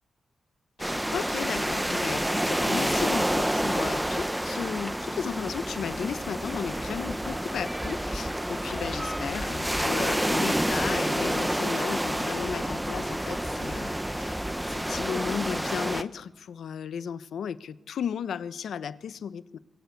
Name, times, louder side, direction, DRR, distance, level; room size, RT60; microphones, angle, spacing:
voice 1, 0.8-19.6, left 7 dB, 85° left, 14 dB, 1.1 m, -35 dB
sound 1, 0.8-16.0, right 1 dB, 5° right, 1.0 m, -29 dB
25.0 x 21.5 x 8.5 m, 1.0 s
wide cardioid pair, 140°, 0 cm